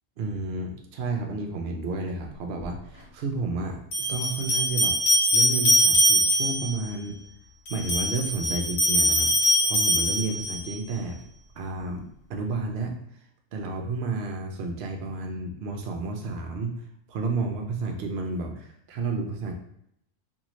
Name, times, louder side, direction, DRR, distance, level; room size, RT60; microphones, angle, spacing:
voice 1, 0.2-3.8 4.1-4.9 5.3-7.2 7.7-11.2 11.6-12.0 12.3-12.9 13.5-16.7 17.1-19.5, right 3 dB, 60° right, 2 dB, 0.7 m, -31 dB
sound 1, 2.6-2.7 3.9-6.7 7.7-10.7, equal, 65° left, 1.2 m, -22 dB
2.7 x 2.6 x 2.9 m, 0.73 s
omnidirectional pair, 1.4 m